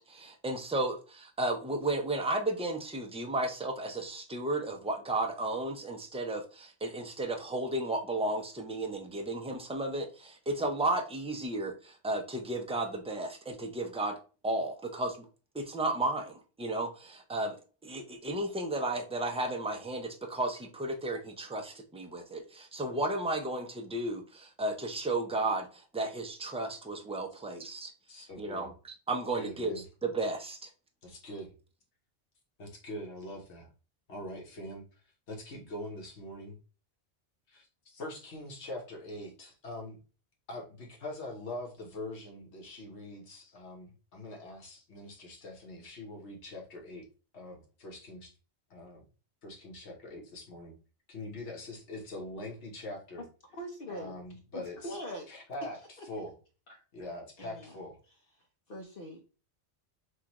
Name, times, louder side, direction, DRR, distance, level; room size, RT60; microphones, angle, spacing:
voice 1, 0.0-14.1 14.4-15.3 15.5-17.6 17.8-30.7, right 2 dB, 10° right, 0.4 m, -34 dB
voice 2, 28.1-28.7 29.4-29.8 31.0-31.5 32.6-33.7 34.1-34.8 35.3-36.6 37.5-40.0 40.5-47.1 47.3-48.3 48.7-49.0 49.4-50.7 51.1-53.2 53.9-55.0 55.3-55.8 56.1-56.3 56.9-58.0, left 1 dB, 75° left, 1.5 m, -43 dB
voice 3, 53.5-54.2 54.5-55.3 56.0-56.1 56.7-56.8 57.4-57.8 58.7-59.2, equal, 55° left, 0.9 m, -42 dB
6.3 x 2.4 x 2.9 m
omnidirectional pair, 1.2 m